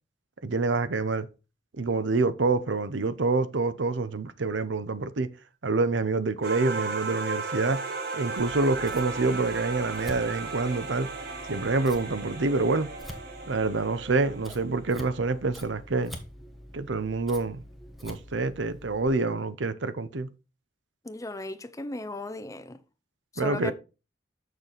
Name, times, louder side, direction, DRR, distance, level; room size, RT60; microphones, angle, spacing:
voice 1, 0.4-1.3 1.8-5.3 5.6-7.8 8.1-11.1 11.5-12.9 13.5-16.2 16.7-17.6 18.0-20.3 23.4-23.7, right 3 dB, 80° right, 0.7 m, -27 dB
sound 1, 6.4-15.0, right 3 dB, 60° right, 2.0 m, -35 dB
Scissors, 8.4-19.1, equal, ahead, 1.3 m, -46 dB
voice 2, 21.0-22.8 23.3-23.7, left 2 dB, 20° left, 0.6 m, -36 dB
6.9 x 6.5 x 4.0 m
head